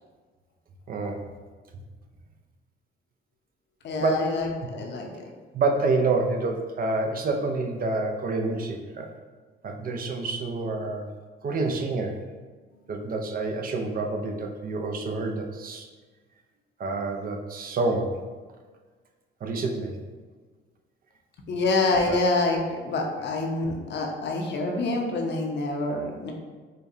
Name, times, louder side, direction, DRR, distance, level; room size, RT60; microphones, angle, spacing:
voice 1, 0.9-1.2 4.0-4.3 5.5-9.1 9.6-11.0 11.4-12.2 12.9-15.9 16.8-18.2 19.4-20.0 22.1-22.2, right 3 dB, 45° right, 3 dB, 0.5 m, -28 dB
voice 2, 3.8-5.2 21.5-26.3, left 2 dB, 60° left, 1 dB, 0.7 m, -26 dB
5.1 x 2.3 x 2.7 m, 1.4 s
cardioid pair, 90°, 20 cm